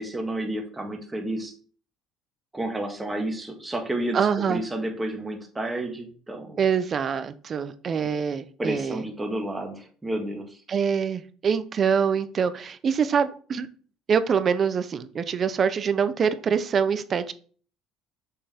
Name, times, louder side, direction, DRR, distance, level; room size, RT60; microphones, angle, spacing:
voice 1, 0.0-1.5 2.5-6.6 8.6-10.6, right 1 dB, 10° right, 2 dB, 1.6 m, -31 dB
voice 2, 4.1-4.6 6.6-9.0 10.7-13.7 14.1-17.3, right 6 dB, 35° right, 12 dB, 0.7 m, -25 dB
6.6 x 5.6 x 3.6 m, 0.43 s
cardioid pair, 120°, 0 cm